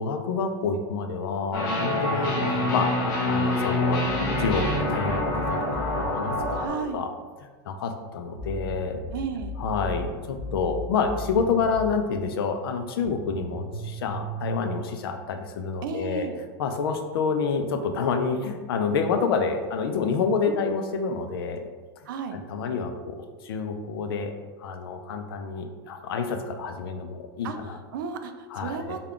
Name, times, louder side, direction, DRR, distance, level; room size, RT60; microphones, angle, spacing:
voice 1, 0.0-2.4 2.7-4.0 4.4-6.4 6.6-7.1 7.7-9.0 9.6-16.3 16.6-21.7 22.0-24.3 24.6-27.8 28.5-29.0, left 5 dB, 85° left, 6 dB, 0.4 m, -28 dB
sound 1, 1.5-6.7, left 1 dB, 45° left, 0.8 m, -26 dB
sound 2, 4.0-6.6 8.4-12.0 13.0-14.7, equal, 25° right, 0.8 m, -36 dB
voice 2, 6.5-7.0 9.1-9.5 15.8-16.4 20.5-20.8 22.1-22.4 27.4-29.0, right 6 dB, 65° right, 7 dB, 0.4 m, -33 dB
3.5 x 2.2 x 3.6 m, 1.4 s
supercardioid pair, 175°, 12 cm